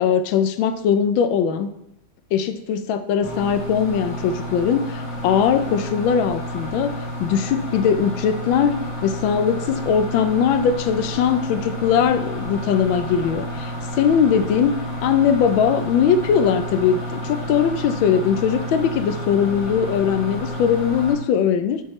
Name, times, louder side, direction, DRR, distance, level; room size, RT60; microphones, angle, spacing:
voice 1, 0.0-1.7 2.3-6.9 7.2-14.7 15.0-21.8, left 7 dB, 75° left, 10 dB, 1.3 m, -20 dB
sound 1, 3.2-21.1, equal, 50° left, 1.3 m, -31 dB
7.3 x 6.3 x 3.1 m, 0.84 s
omnidirectional pair, 2.3 m